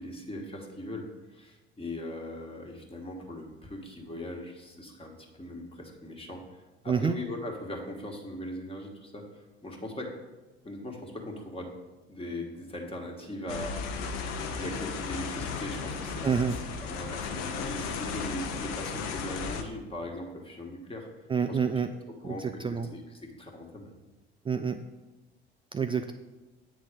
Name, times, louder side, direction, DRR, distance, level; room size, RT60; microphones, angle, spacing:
voice 1, 0.0-10.1 10.6-11.7 12.1-13.8 14.5-21.6 22.2-23.9, left 1 dB, 20° left, 0 dB, 1.6 m, -40 dB
sound 1, 13.5-19.6, left 5 dB, 55° left, 0.9 m, -35 dB
voice 2, 16.2-16.5 21.3-21.9 22.2-22.3 22.6-22.9 24.5-24.8 25.7-26.1, right 6 dB, 15° right, 8 dB, 0.3 m, -27 dB
8.5 x 4.1 x 5.1 m, 1.1 s
hypercardioid pair, 65°, 31 cm